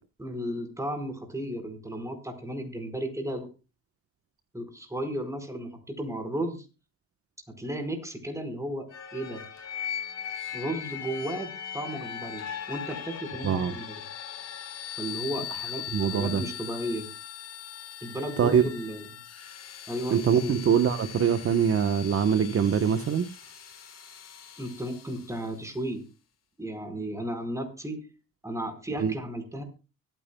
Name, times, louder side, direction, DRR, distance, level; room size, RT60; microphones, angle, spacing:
voice 1, 0.2-3.5 4.5-6.6 7.6-8.9 9.1-9.4 10.5-14.0 15.0-17.1 18.0-19.0 19.9-20.6 24.6-26.0 26.6-28.0 28.4-29.6, right 1 dB, 10° right, 5 dB, 4.5 m, -34 dB
sound 1, 8.9-25.6, left 9 dB, 55° left, 3.4 m, -40 dB
voice 2, 15.9-16.4 18.4-18.6 20.1-23.3 29.0-29.1, right 7 dB, 50° right, 9 dB, 1.1 m, -23 dB
24.0 x 9.2 x 2.2 m, 0.30 s
cardioid pair, 90°, 30 cm